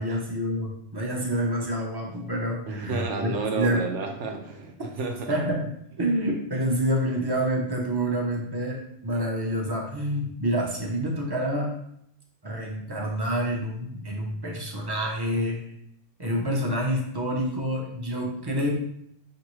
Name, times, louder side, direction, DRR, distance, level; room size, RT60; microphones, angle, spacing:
voice 1, 0.0-3.8 5.3-5.7 6.0-11.7 12.4-15.6 16.2-18.7, equal, 30° right, -1 dB, 0.5 m, -27 dB
voice 2, 2.7-5.3, right 4 dB, 70° right, 3 dB, 0.9 m, -31 dB
5.5 x 2.6 x 3.0 m, 0.73 s
omnidirectional pair, 1.3 m